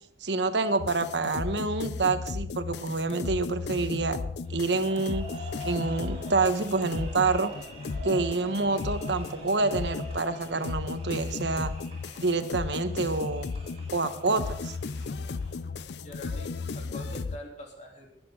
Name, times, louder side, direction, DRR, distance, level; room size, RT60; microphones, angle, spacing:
voice 1, 0.2-4.2 4.5-5.3 5.6-7.5 8.0-11.7 12.2-13.5 13.9-14.7, right 3 dB, 80° right, 9 dB, 1.2 m, -27 dB
sound 1, 0.8-17.4, left 4 dB, 70° left, 0.5 m, -35 dB
sound 2, 4.4-15.5, equal, 35° right, 5.3 m, -46 dB
voice 2, 15.6-18.1, left 1 dB, 40° left, 0 dB, 3.5 m, -45 dB
20.5 x 10.0 x 3.9 m, 0.72 s
head